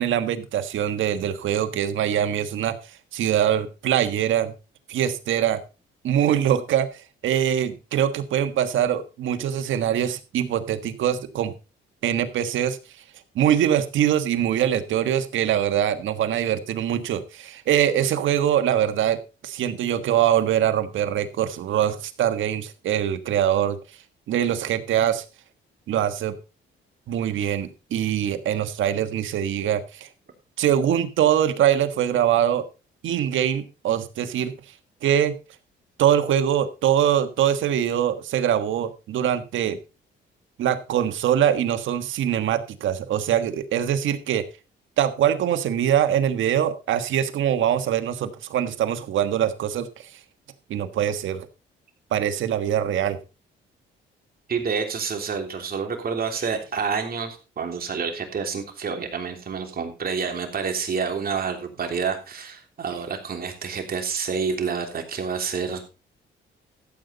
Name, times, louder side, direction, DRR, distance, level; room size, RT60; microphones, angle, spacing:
voice 1, 0.0-2.7 3.1-4.5 4.9-5.6 6.0-11.5 12.0-12.8 13.3-19.2 19.4-23.8 24.3-25.2 25.9-26.3 27.1-30.1 30.6-32.6 33.0-34.5 35.0-35.3 36.0-39.8 40.6-44.4 45.0-50.1 50.7-51.5 52.1-53.2, right 10 dB, 75° right, 9 dB, 1.5 m, -23 dB
voice 2, 54.5-65.8, right 5 dB, 50° right, 4 dB, 3.4 m, -28 dB
14.0 x 8.3 x 4.0 m, 0.31 s
cardioid pair, 90°, 20 cm